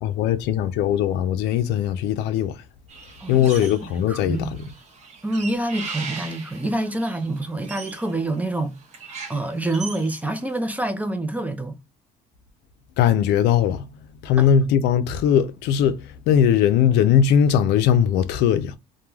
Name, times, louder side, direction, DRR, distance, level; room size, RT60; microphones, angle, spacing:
voice 1, 0.0-2.6 3.3-4.6 13.0-13.9 14.2-18.8, left 9 dB, 85° left, 0.4 m, -20 dB
sound 1, 2.9-4.0 4.3-10.5, right 4 dB, 40° right, 0.8 m, -39 dB
voice 2, 3.9-4.7 5.2-8.8 9.3-11.8 14.4-14.5, right 1 dB, 10° right, 0.4 m, -27 dB
2.2 x 2.2 x 3.1 m
cardioid pair, 110°, 17 cm